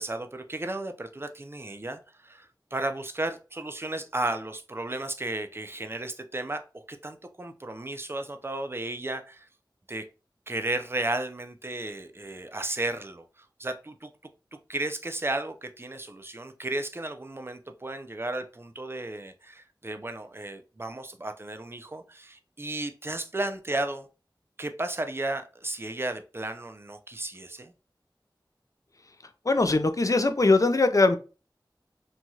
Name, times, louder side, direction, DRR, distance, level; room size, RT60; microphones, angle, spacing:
voice 1, 0.0-9.5 9.9-10.1 10.5-13.2 13.6-14.1 14.5-24.1 24.6-27.7, right 2 dB, 30° right, 0.4 m, -34 dB
voice 2, 29.5-31.2, left 3 dB, 45° left, 0.4 m, -21 dB
3.0 x 2.3 x 2.6 m
wide cardioid pair, 45°, 8 cm